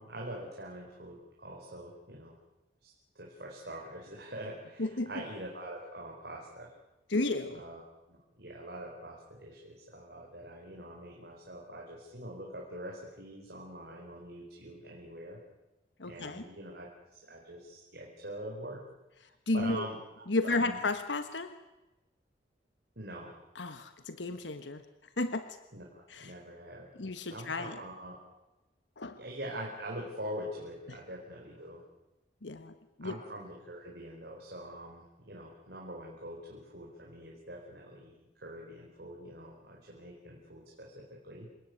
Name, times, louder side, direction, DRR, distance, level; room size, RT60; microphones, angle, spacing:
voice 1, 0.0-2.3 2.8-6.7 7.5-7.8 8.1-15.4 16.0-18.8 19.5-20.0 20.4-20.8 23.0-23.3 25.7-26.9 27.3-28.2 29.2-31.8 33.0-41.5, right 1 dB, 65° right, -1 dB, 4.6 m, -44 dB
voice 2, 4.8-5.1 7.1-7.6 16.0-16.4 19.5-19.9 20.3-21.5 23.5-24.8 25.2-25.6 26.1-26.3 27.0-27.8 29.0-29.2 32.4-33.2, left 2 dB, 90° left, 10 dB, 1.4 m, -33 dB
28.5 x 17.5 x 9.5 m, 1.0 s
head